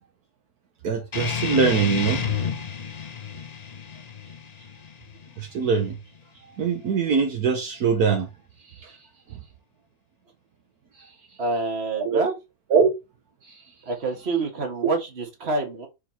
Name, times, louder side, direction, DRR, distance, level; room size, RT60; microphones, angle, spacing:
voice 1, 0.8-2.3 5.4-6.0 6.6-8.3 8.6-9.4 10.9-11.2 12.0-12.2 12.7-12.9 13.4-13.7, right 5 dB, 70° right, 1.4 m, -23 dB
sound 1, 1.1-6.2, left 7 dB, 40° left, 0.6 m, -31 dB
voice 2, 11.4-12.3 13.9-15.9, right 3 dB, 40° right, 1.9 m, -27 dB
4.6 x 4.5 x 5.6 m
omnidirectional pair, 1.7 m